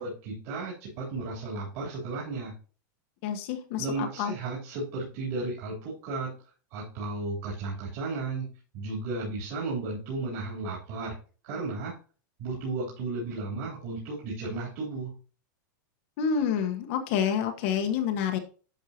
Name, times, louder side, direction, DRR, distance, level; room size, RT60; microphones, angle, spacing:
voice 1, 0.0-2.5 3.8-6.3 6.7-8.5 8.7-11.2 11.4-11.9 12.4-15.1, right 3 dB, 40° right, -6 dB, 3.6 m, -34 dB
voice 2, 3.2-4.3 16.2-18.4, left 7 dB, 40° left, 6 dB, 1.2 m, -28 dB
11.0 x 6.4 x 2.9 m, 0.38 s
supercardioid pair, 170°, 11 cm